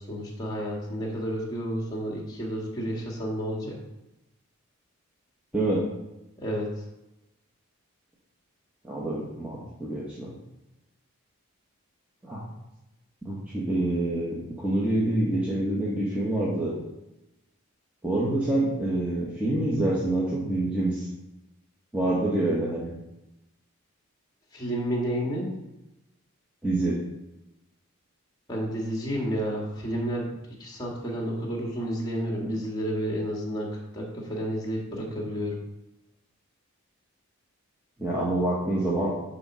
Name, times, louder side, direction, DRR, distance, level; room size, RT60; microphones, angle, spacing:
voice 1, 0.0-3.8 6.4-6.8 24.5-25.5 28.5-30.3 30.6-33.7 33.9-35.6, equal, 20° left, -1 dB, 2.0 m, -31 dB
voice 2, 5.5-5.8 8.8-10.3 12.2-12.4 13.2-16.7 18.0-21.1 21.9-22.9 26.6-27.0 38.0-39.1, right 1 dB, 5° right, -7 dB, 1.3 m, -26 dB
9.7 x 4.0 x 6.2 m, 0.96 s
head